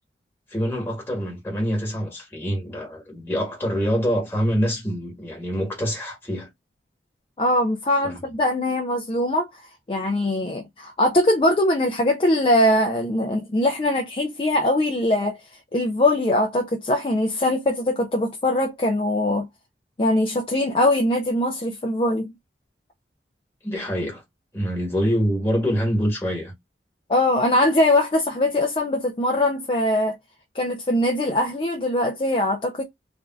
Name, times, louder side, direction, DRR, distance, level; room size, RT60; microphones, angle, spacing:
voice 1, 0.5-6.5 8.0-8.1 23.6-24.2 24.5-26.5, equal, 15° left, 1.4 m, -25 dB
voice 2, 7.4-9.6 9.9-19.5 20.0-22.3 27.1-30.2 30.5-32.8, left 1 dB, 30° left, 0.4 m, -22 dB
3.4 x 2.5 x 2.3 m
head